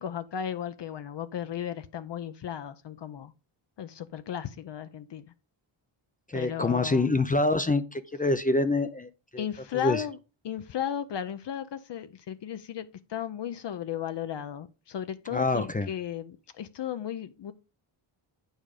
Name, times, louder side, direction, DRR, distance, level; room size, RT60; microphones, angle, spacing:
voice 1, 0.0-3.3 3.8-5.2 6.3-7.1 9.4-10.2 10.4-12.8 13.1-17.5, left 9 dB, 55° left, 0.7 m, -35 dB
voice 2, 6.3-9.4 9.7-10.0 15.3-15.9, left 2 dB, 15° left, 0.4 m, -26 dB
9.1 x 5.0 x 4.8 m
wide cardioid pair, 130°, 50 cm